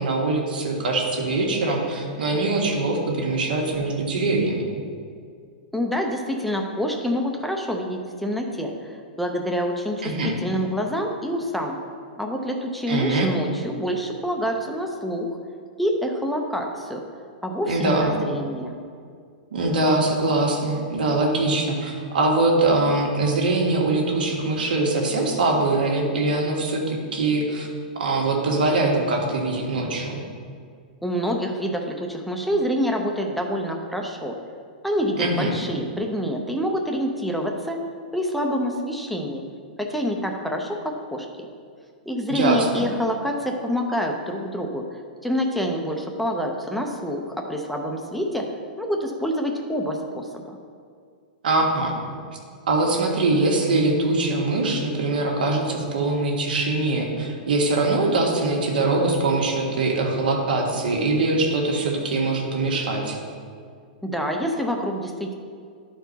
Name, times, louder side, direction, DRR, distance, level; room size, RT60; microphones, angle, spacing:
voice 1, 0.0-4.6 10.0-10.3 12.9-13.3 17.7-18.2 19.5-27.7 27.9-30.2 35.2-35.5 42.3-42.9 51.4-51.9 52.7-63.2, right 2 dB, 90° right, 0 dB, 1.6 m, -22 dB
voice 2, 5.7-11.8 12.2-15.4 15.8-17.0 17.4-18.8 31.0-34.4 34.8-37.8 38.1-39.4 39.8-41.3 42.1-44.9 45.2-48.5 48.8-50.6 64.0-65.3, equal, ahead, 2 dB, 0.5 m, -27 dB
11.0 x 4.5 x 4.0 m, 2.2 s
hypercardioid pair, 160°, 5 cm